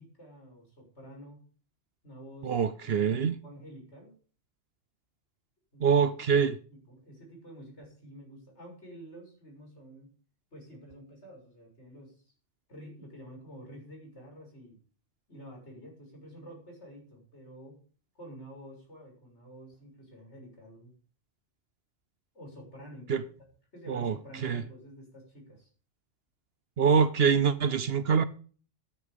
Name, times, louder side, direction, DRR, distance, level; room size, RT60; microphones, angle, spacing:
voice 1, 0.0-1.5 2.0-4.1 5.7-6.0 6.7-10.1 10.5-12.3 12.7-14.8 15.3-17.8 18.2-20.9 22.3-23.2 23.7-25.7, equal, 65° left, 7.1 m, -49 dB
voice 2, 2.4-3.3 5.8-6.6 23.1-23.2 23.9-24.6 26.8-28.2, right 6 dB, 60° right, 0.9 m, -25 dB
13.5 x 10.5 x 5.2 m
omnidirectional pair, 1.3 m